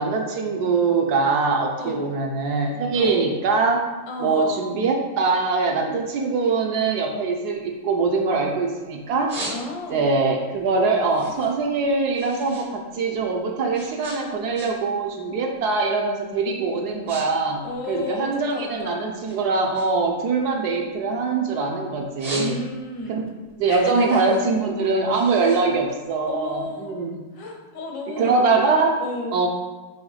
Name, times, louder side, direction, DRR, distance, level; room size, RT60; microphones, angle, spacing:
voice 1, 0.0-3.9 4.2-9.3 9.9-17.6 17.9-22.6 23.1-23.2 23.6-27.2 28.2-29.0 29.3-29.5, right 4 dB, 70° right, 2 dB, 1.2 m, -23 dB
voice 2, 1.8-2.1 2.9-3.3 4.1-4.7 9.5-10.1 17.6-19.0 22.3-23.2 23.7-24.4 25.4-25.5 26.2-26.9 27.3-28.5 29.0-29.4, left 3 dB, 75° left, 2 dB, 1.4 m, -33 dB
sound 1, 7.5-8.7 9.0-10.1 10.5-12.7 13.0-15.0 15.3-15.7 16.3-16.4 16.7-17.3 17.5-18.8 19.2-21.6 22.0-23.0 23.4-26.5, right 2 dB, 35° right, 0.6 m, -38 dB
6.4 x 3.1 x 4.8 m, 1.2 s
omnidirectional pair, 1.9 m